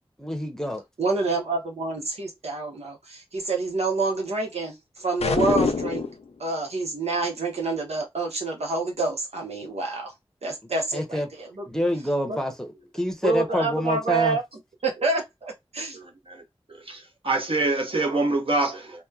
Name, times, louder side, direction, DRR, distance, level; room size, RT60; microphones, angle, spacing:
voice 1, 0.2-0.8 10.9-11.3 11.7-14.4, equal, 5° left, 0.7 m, -27 dB
voice 2, 1.0-6.0 6.4-10.1 10.4-11.7 12.3-12.4 13.2-14.4 14.8-16.0, right 3 dB, 85° right, 0.9 m, -27 dB
sound 1, 5.2-6.2, left 5 dB, 80° left, 0.4 m, -24 dB
voice 3, 15.9-16.4 16.9-19.0, right 2 dB, 60° right, 0.9 m, -26 dB
2.9 x 2.1 x 2.3 m
wide cardioid pair, 50°, 11 cm